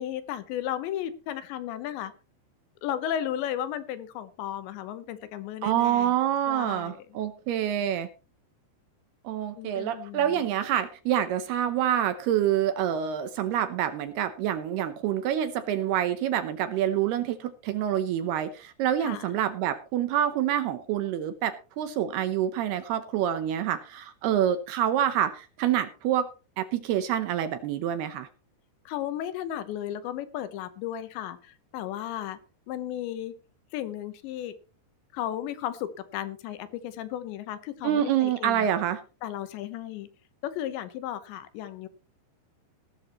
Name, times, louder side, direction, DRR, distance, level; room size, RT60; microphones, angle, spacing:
voice 1, 0.0-2.1 2.8-6.2 6.5-7.0 9.6-10.5 19.0-19.3 28.9-32.4 32.7-33.3 33.7-34.5 35.1-38.7 39.2-40.1 40.4-41.9, left 11 dB, 75° left, 12 dB, 3.2 m, -34 dB
voice 2, 5.6-8.1 9.2-26.3 26.6-28.3 37.8-39.0, right 10 dB, 75° right, 10 dB, 2.5 m, -27 dB
17.0 x 12.5 x 3.0 m, 0.33 s
omnidirectional pair, 5.3 m